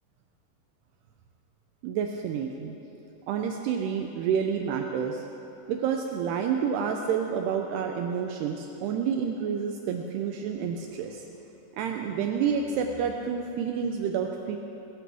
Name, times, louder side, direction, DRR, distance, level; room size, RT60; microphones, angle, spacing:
voice 1, 1.8-2.8 3.3-5.2 5.7-11.2 11.8-14.6, right 7 dB, 90° right, 3 dB, 2.3 m, -29 dB
21.0 x 13.0 x 3.5 m, 2.9 s
omnidirectional pair, 5.5 m